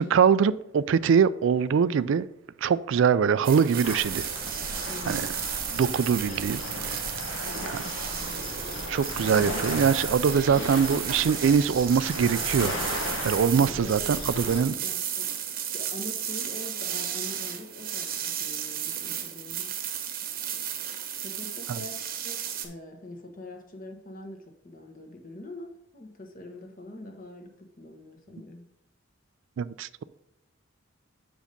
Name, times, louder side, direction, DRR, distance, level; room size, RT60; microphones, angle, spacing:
voice 1, 0.0-2.3 2.6-4.3 5.1-5.2 5.7-7.0 7.7-7.8 8.9-12.8 13.2-14.7 21.7-21.8 29.6-30.0, right 6 dB, 70° right, 0.3 m, -23 dB
sound 1, 3.4-22.7, right 9 dB, 45° right, 0.9 m, -34 dB
sound 2, 3.8-14.6, left 1 dB, 85° left, 1.7 m, -36 dB
voice 2, 4.9-5.4 7.4-7.8 13.6-15.2 15.5-19.7 21.2-28.6, left 1 dB, 40° left, 1.2 m, -44 dB
6.6 x 5.0 x 5.2 m
head